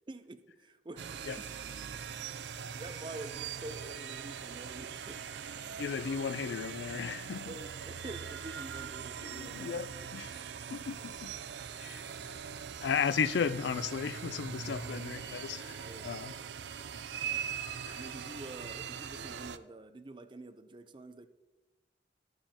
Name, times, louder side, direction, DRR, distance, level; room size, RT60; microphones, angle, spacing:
voice 1, 0.1-1.1 1.4-1.5 2.5-5.2 7.5-10.1 14.6-15.2 15.8-16.1 17.9-21.3, right 2 dB, 25° right, 0.5 m, -47 dB
sound 1, 1.0-19.6, right 7 dB, 80° right, 0.4 m, -41 dB
voice 2, 5.8-7.5 9.2-10.4 10.7-11.3 11.8-12.4 12.8-16.3 17.8-18.1, left 6 dB, 75° left, 0.4 m, -35 dB
12.5 x 8.7 x 2.9 m
head